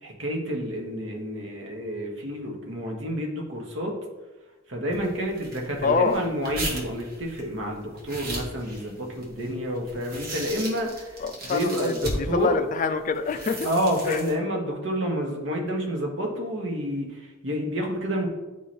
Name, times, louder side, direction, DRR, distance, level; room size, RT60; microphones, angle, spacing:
voice 1, 0.0-4.0 4.7-12.6 13.6-18.3, equal, 70° right, 0 dB, 1.3 m, -29 dB
sound 1, 4.9-12.5 13.1-14.3, right 1 dB, 50° right, 1.4 m, -37 dB
voice 2, 5.8-6.2 11.2-13.7 14.1-14.2, left 5 dB, 40° left, 9 dB, 0.4 m, -26 dB
8.9 x 3.2 x 4.3 m, 1.1 s
head